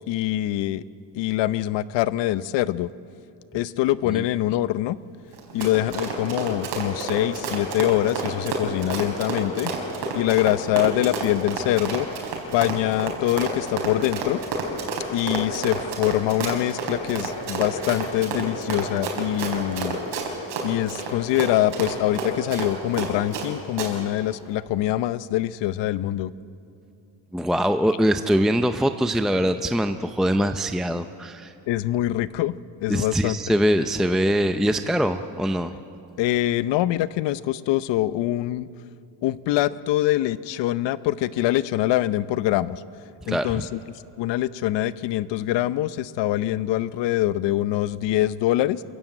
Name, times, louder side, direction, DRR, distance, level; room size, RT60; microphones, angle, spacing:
voice 1, 0.1-0.8 1.1-2.9 3.5-5.0 5.5-9.7 10.1-12.1 12.5-14.4 15.1-20.0 20.6-26.3 31.7-33.4 36.2-38.7 39.2-42.8 43.3-43.8 44.2-48.8, left 14 dB, 85° left, 16 dB, 0.7 m, -24 dB
Run, 5.3-23.5 23.8-23.9, right 3 dB, 85° right, 4.8 m, -29 dB
voice 2, 27.3-31.5 32.9-35.7 43.3-43.7, equal, ahead, 8 dB, 0.5 m, -23 dB
26.5 x 15.0 x 9.1 m, 2.6 s
cardioid pair, 125°, 42 cm